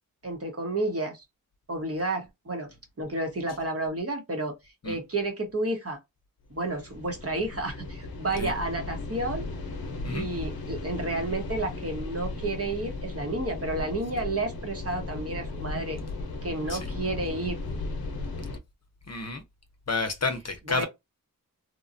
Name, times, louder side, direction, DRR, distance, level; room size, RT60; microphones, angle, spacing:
voice 1, 0.2-1.2 1.7-4.5 4.8-6.0 6.5-9.5 10.1-16.0 16.4-17.6 20.7-20.9, right 2 dB, 40° right, 1.0 m, -31 dB
sound 1, 6.5-18.6, left 2 dB, 90° left, 0.7 m, -36 dB
voice 2, 19.1-19.4 19.9-20.9, left 3 dB, 45° left, 0.7 m, -30 dB
3.0 x 2.2 x 2.5 m
wide cardioid pair, 65°, 36 cm